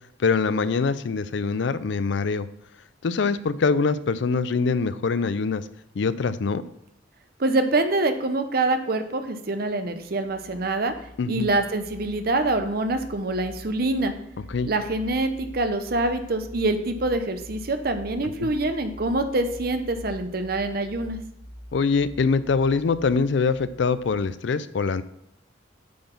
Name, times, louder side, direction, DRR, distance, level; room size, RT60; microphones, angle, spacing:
voice 1, 0.2-2.5 3.0-5.6 6.0-6.6 11.2-11.5 14.5-14.7 18.4-18.5 21.7-25.0, left 4 dB, 65° left, 15 dB, 0.4 m, -24 dB
voice 2, 7.4-10.9 11.3-14.1 14.6-21.2, right 2 dB, 50° right, 8 dB, 0.7 m, -25 dB
sound 1, 9.8-24.3, equal, 10° right, 1.3 m, -44 dB
8.6 x 4.0 x 5.2 m, 0.81 s
head